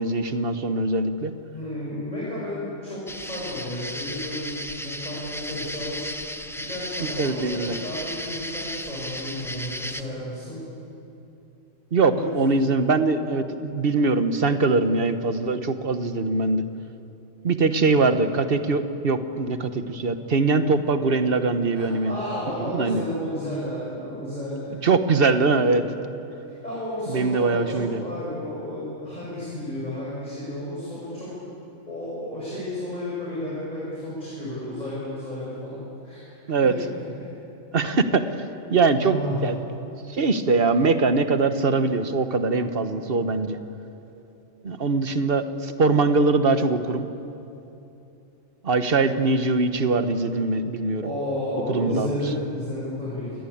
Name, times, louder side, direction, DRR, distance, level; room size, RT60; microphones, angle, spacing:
voice 1, 0.0-1.3 7.2-7.7 11.9-16.6 17.4-22.1 22.7-23.0 24.8-25.8 27.1-28.0 36.5-36.7 37.7-38.4 38.7-39.5 40.1-43.6 44.6-47.1 48.6-51.0 51.7-52.2, right 3 dB, 45° right, 9 dB, 1.4 m, -22 dB
voice 2, 1.5-10.6 12.1-12.7 21.7-24.7 26.6-31.3 31.9-36.4 36.6-37.0 39.0-39.4 51.0-53.4, left 1 dB, 30° left, -8 dB, 7.6 m, -32 dB
sound 1, 3.1-10.0, equal, 5° left, 0.6 m, -35 dB
28.0 x 20.5 x 8.7 m, 2.9 s
omnidirectional pair, 1.4 m